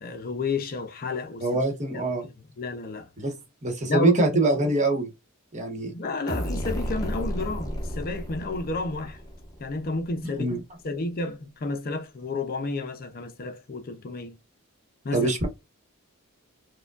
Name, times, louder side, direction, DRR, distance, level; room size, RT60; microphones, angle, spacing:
voice 1, 0.0-1.6 1.9-2.1 2.6-3.1 3.9-4.2 5.9-9.2 9.6-10.5 10.8-14.4 15.0-15.3, left 3 dB, 45° left, 0.5 m, -31 dB
voice 2, 1.4-2.2 3.2-3.3 3.6-5.1 5.5-5.9 10.4-10.6 15.1-15.5, right 2 dB, 35° right, 1.1 m, -24 dB
sound 1, 6.3-9.9, equal, 15° left, 1.0 m, -32 dB
4.9 x 2.2 x 2.3 m
head